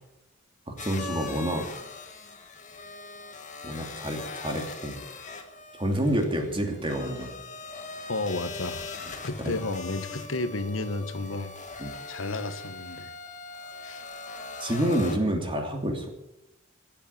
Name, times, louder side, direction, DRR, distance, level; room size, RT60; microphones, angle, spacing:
voice 1, 0.7-1.6 3.6-5.0 5.8-7.3 9.4-9.6 11.8-11.9 14.6-16.1, right 1 dB, 25° right, 3 dB, 2.8 m, -28 dB
sound 1, 0.8-15.2, left 4 dB, 40° left, 1.6 m, -41 dB
voice 2, 8.1-8.9 9.2-11.5 12.1-13.1 13.8-14.0, left 2 dB, 85° left, 10 dB, 1.3 m, -32 dB
15.5 x 8.4 x 8.7 m, 0.89 s
head